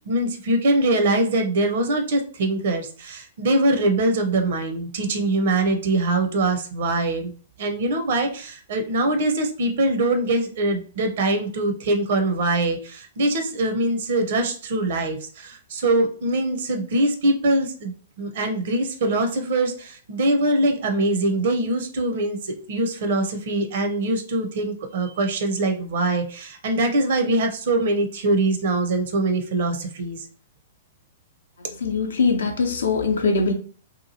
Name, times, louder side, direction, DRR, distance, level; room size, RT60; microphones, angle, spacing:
voice 1, 0.0-7.3 7.6-30.2, right 2 dB, 55° right, 0.6 m, -23 dB
voice 2, 31.8-33.5, left 4 dB, 70° left, 0.5 m, -21 dB
2.9 x 2.3 x 2.7 m
figure-of-eight pair, 110°, 0 cm